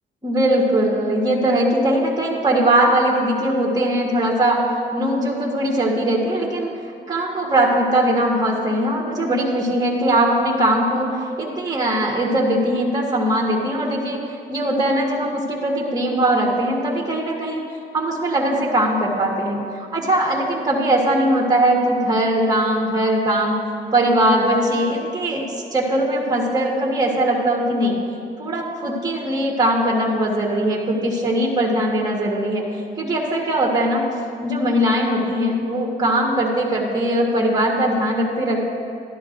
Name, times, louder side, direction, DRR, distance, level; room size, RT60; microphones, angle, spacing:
voice 1, 0.2-4.6 4.9-6.7 7.1-14.2 14.5-17.6 17.9-19.6 19.9-23.6 23.9-25.4 25.7-27.9 28.4-32.6 33.0-34.1 34.4-38.7, right 1 dB, 20° right, -3 dB, 1.6 m, -20 dB
12.0 x 11.0 x 2.6 m, 2.3 s
cardioid pair, 90°, 20 cm